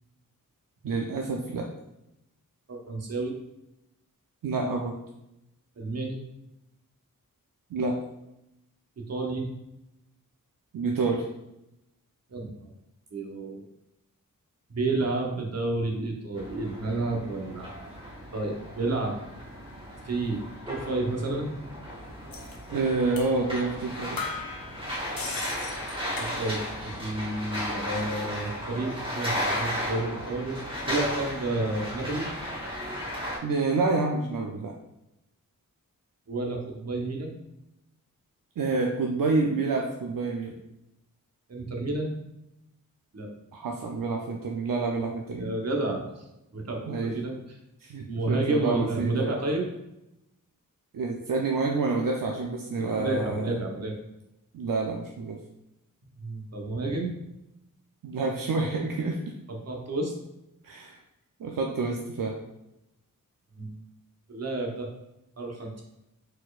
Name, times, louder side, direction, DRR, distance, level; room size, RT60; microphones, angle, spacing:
voice 1, 0.8-1.7 4.4-5.0 7.7-8.0 10.7-11.2 22.7-24.2 33.4-34.7 38.6-40.5 43.5-45.5 46.9-47.2 47.8-49.4 50.9-53.6 54.5-55.4 58.0-59.2 60.6-61.0 61.4-62.4, right 3 dB, 70° right, 1 dB, 0.6 m, -28 dB
voice 2, 2.7-3.4 5.8-6.2 9.1-9.5 12.3-12.5 13.1-13.6 14.7-17.7 18.3-19.2 20.0-21.5 26.2-32.3 36.3-37.4 41.5-42.1 43.1-43.3 45.4-46.2 46.5-47.4 48.1-49.6 52.7-53.9 56.2-57.2 59.7-60.1 63.6-63.8 64.3-64.9 65.4-65.8, right 2 dB, 45° right, 1 dB, 0.9 m, -30 dB
sound 1, 16.3-33.4, equal, 15° right, 1.3 m, -35 dB
sound 2, 22.3-22.6 23.2-23.3 23.7-23.8 24.2-26.8 27.1-27.7, left 4 dB, 80° left, 0.8 m, -38 dB
4.4 x 4.2 x 2.4 m, 0.88 s
wide cardioid pair, 100°, 34 cm